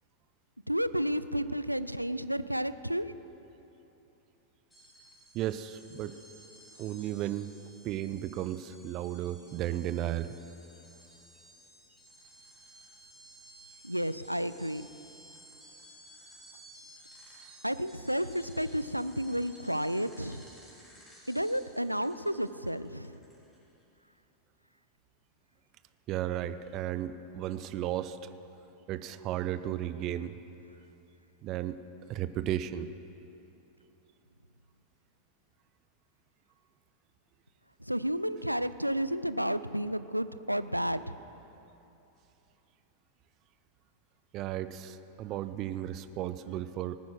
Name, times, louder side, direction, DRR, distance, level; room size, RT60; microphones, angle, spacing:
voice 1, 0.7-3.1 13.8-14.9 17.6-20.4 21.3-23.2 37.9-41.1, equal, 90° right, 14 dB, 0.4 m, -31 dB
sound 1, 4.7-23.8, right 1 dB, 10° left, 3.7 m, -56 dB
voice 2, 5.3-6.1 6.8-7.5 7.8-10.3 26.1-28.2 28.9-30.4 31.4-31.8 32.1-32.9 44.3-47.0, right 12 dB, 35° right, 12 dB, 0.5 m, -34 dB
19.0 x 9.5 x 6.2 m, 2.9 s
figure-of-eight pair, 90°, 0 cm